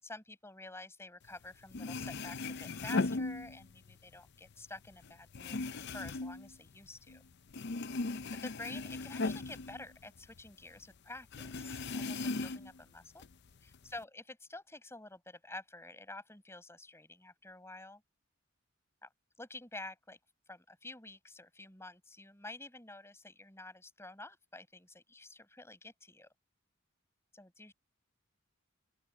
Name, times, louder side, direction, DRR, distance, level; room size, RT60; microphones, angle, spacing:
voice 1, 0.0-7.2 8.3-13.3 13.6-18.0 19.0-19.1 19.4-20.2 20.5-26.3 27.3-27.7, left 2 dB, 15° left, 6.2 m, -49 dB
sound 1, 1.4-1.5 1.7-3.9 4.3-7.2 7.5-10.5 10.8-10.9 11.3-12.8 13.2-14.0, left 3 dB, 55° left, 0.6 m, -38 dB
open air
head